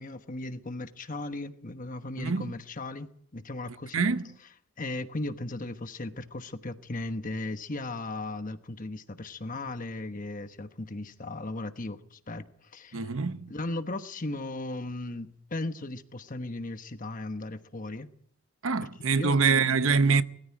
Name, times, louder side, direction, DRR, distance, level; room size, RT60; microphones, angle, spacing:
voice 1, 0.0-4.1 4.8-12.5 12.7-13.1 13.5-18.1 19.0-19.9, left 2 dB, 40° left, 1.2 m, -37 dB
voice 2, 2.2-2.5 3.9-4.3 12.9-13.5 18.6-20.2, right 5 dB, 75° right, 0.8 m, -25 dB
20.5 x 14.5 x 8.7 m
head